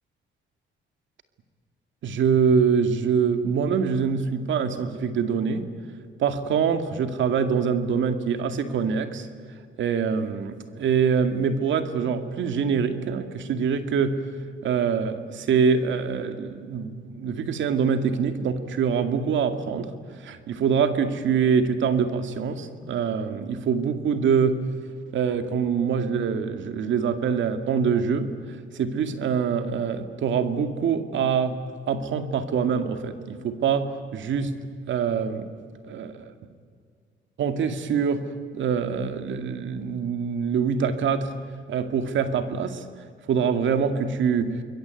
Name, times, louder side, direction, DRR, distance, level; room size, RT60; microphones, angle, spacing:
voice 1, 2.0-5.7 6.2-9.3 9.8-14.2 14.6-19.9 20.2-24.6 25.1-28.3 28.7-31.6 31.9-34.5 34.9-35.5 35.8-36.3 37.4-38.3 38.5-41.3 41.7-42.8 43.3-44.6, right 6 dB, 70° right, 9 dB, 2.3 m, -24 dB
26.5 x 22.0 x 9.2 m, 2.1 s
cardioid pair, 90°, 20 cm